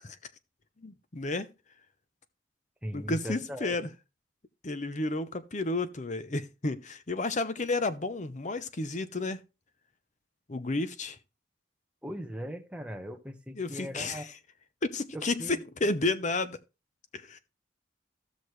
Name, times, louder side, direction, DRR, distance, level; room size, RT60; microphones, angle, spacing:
voice 1, 0.8-1.5 2.9-3.9 4.6-9.4 10.5-11.2 13.6-14.2 14.8-16.6 17.1-17.4, left 2 dB, 40° left, 0.8 m, -31 dB
voice 2, 2.8-3.9 12.0-14.3 15.1-15.6, equal, 5° right, 1.0 m, -39 dB
15.0 x 6.2 x 3.2 m
head